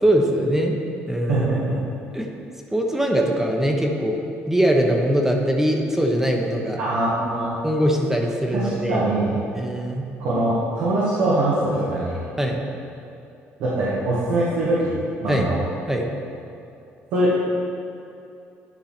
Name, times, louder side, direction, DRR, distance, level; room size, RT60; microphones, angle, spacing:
voice 1, 0.0-0.7 1.1-1.5 2.1-2.3 2.7-4.2 4.5-6.8 7.6-9.1 9.5-10.0 12.4-12.6 15.3-15.5 15.9-16.0, equal, 10° right, 1 dB, 1.0 m, -21 dB
voice 2, 1.3-1.8 6.8-7.5 8.5-9.3 10.2-12.2 13.6-14.9 15.2-15.6 17.1-17.4, right 1 dB, 85° right, -8 dB, 1.6 m, -22 dB
11.0 x 4.7 x 4.4 m, 2.6 s
cardioid pair, 90°, 5 cm